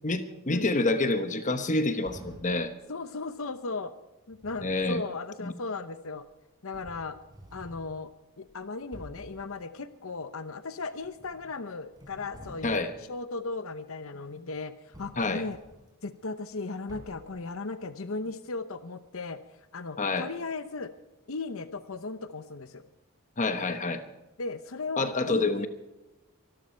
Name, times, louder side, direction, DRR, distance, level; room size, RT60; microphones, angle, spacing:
voice 1, 0.0-2.7 4.6-5.0 5.4-5.5 12.6-12.9 15.2-15.4 20.0-20.3 23.4-24.0 25.0-25.7, left 2 dB, 35° left, 9 dB, 1.1 m, -27 dB
sound 1, 2.0-2.7 4.3-4.9 6.2-6.3 6.7-7.9 8.5-8.6 8.9-9.4 11.0-11.6 11.9-13.0 14.9-15.9 16.9-17.4, equal, 20° right, 3.9 m, -49 dB
voice 2, 2.9-3.9 4.3-6.2 6.6-7.2 7.5-15.6 16.0-19.4 19.7-20.9 21.3-22.8 24.4-25.7, left 3 dB, 65° left, 11 dB, 0.8 m, -36 dB
24.0 x 13.0 x 4.5 m, 1.0 s
head